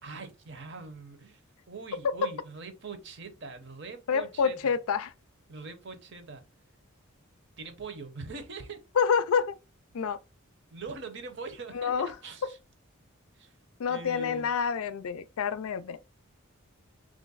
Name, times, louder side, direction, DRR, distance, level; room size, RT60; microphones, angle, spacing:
voice 1, 0.0-1.4 1.7-4.7 5.5-6.4 7.6-8.8 10.7-12.6 13.3-13.5 13.9-14.5, right 4 dB, 55° right, 0.7 m, -42 dB
voice 2, 4.1-5.1 9.0-9.6 9.9-10.2 11.7-12.1 13.8-16.0, left 6 dB, 80° left, 0.4 m, -27 dB
3.1 x 2.5 x 3.9 m
head